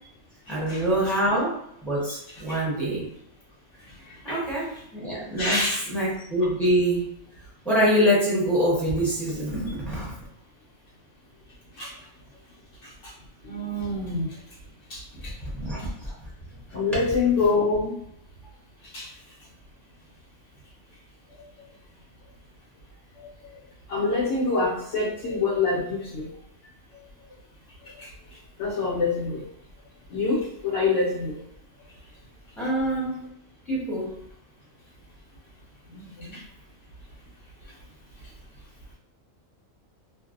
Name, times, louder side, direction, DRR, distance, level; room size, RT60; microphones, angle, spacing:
voice 1, 0.5-1.6 1.8-3.1 4.2-7.1 7.6-10.1 15.5-15.8 32.6-33.3 33.7-34.2, equal, ahead, -8 dB, 0.7 m, -25 dB
voice 2, 4.0-4.4 5.4-5.8 11.8-11.9 13.0-13.1 13.4-14.3 14.9-15.3 16.7-17.9 18.9-19.1 23.2-23.3 23.9-26.3 28.0-28.1 28.6-29.4 30.1-31.4 35.9-36.4, left 3 dB, 70° left, -5 dB, 0.9 m, -26 dB
2.5 x 2.0 x 2.5 m, 0.74 s
omnidirectional pair, 1.4 m